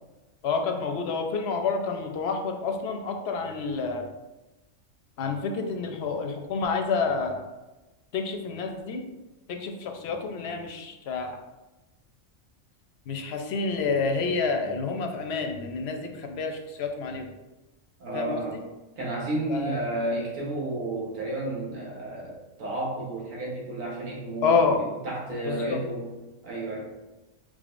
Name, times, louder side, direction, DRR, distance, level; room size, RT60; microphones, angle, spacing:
voice 1, 0.4-4.1 5.2-7.4 8.1-9.1 9.5-11.4 13.1-17.3 18.1-18.6 19.5-19.8 24.4-24.8 25.5-25.8, left 4 dB, 60° left, 4 dB, 0.8 m, -28 dB
voice 2, 18.0-18.6 19.0-26.1 26.4-26.9, right 1 dB, 85° right, -4 dB, 1.6 m, -32 dB
4.8 x 4.0 x 2.5 m, 1.1 s
omnidirectional pair, 1.3 m